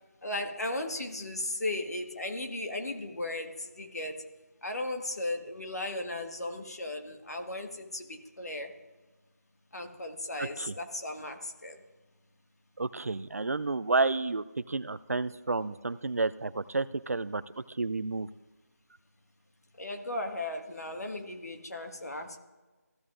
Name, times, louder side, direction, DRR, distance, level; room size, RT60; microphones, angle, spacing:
voice 1, 0.2-4.2 4.6-8.8 9.7-11.8 19.8-22.4, left 2 dB, 70° left, 4 dB, 1.5 m, -36 dB
voice 2, 10.4-10.7 12.8-17.4 17.8-18.3, right 3 dB, 65° right, 16 dB, 0.4 m, -30 dB
15.0 x 7.5 x 2.5 m, 1.2 s
figure-of-eight pair, 165°, 9 cm